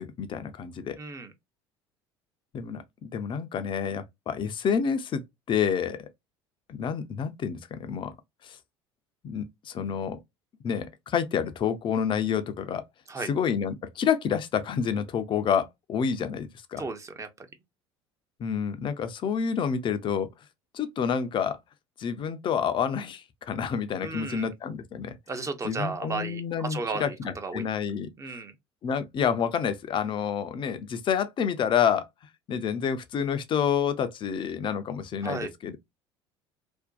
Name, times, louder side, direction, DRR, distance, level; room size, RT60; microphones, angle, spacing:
voice 1, 0.0-1.0 2.5-5.2 5.5-6.1 6.7-8.2 8.4-8.6 9.2-10.2 10.6-12.8 13.2-16.9 18.4-20.3 20.7-21.6 22.0-25.2 25.6-28.1 28.8-32.1 32.5-35.8, left 7 dB, 35° left, 0.5 m, -28 dB
voice 2, 1.0-1.3 13.1-13.3 16.8-17.5 24.0-24.5 25.3-27.7 28.2-28.5 35.2-35.5, right 3 dB, 20° right, 0.6 m, -34 dB
2.5 x 2.1 x 2.2 m
hypercardioid pair, 65°, 14 cm